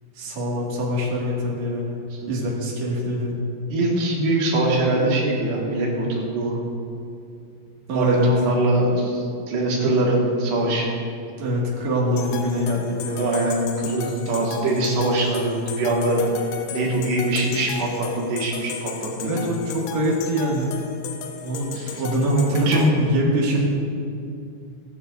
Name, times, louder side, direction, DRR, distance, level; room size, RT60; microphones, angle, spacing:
voice 1, 0.1-2.0 2.2-3.4 7.9-8.3 11.4-13.4 19.2-20.8 21.4-23.6, equal, 50° right, -4 dB, 2.9 m, -24 dB
voice 2, 3.7-6.6 7.9-11.0 12.8-16.2 16.7-19.5 21.7-21.9 22.3-23.7, right 1 dB, 80° right, -3 dB, 4.0 m, -23 dB
sound 1, 12.2-22.9, left 6 dB, 80° left, 2.7 m, -35 dB
19.5 x 9.5 x 2.6 m, 2.5 s
omnidirectional pair, 4.7 m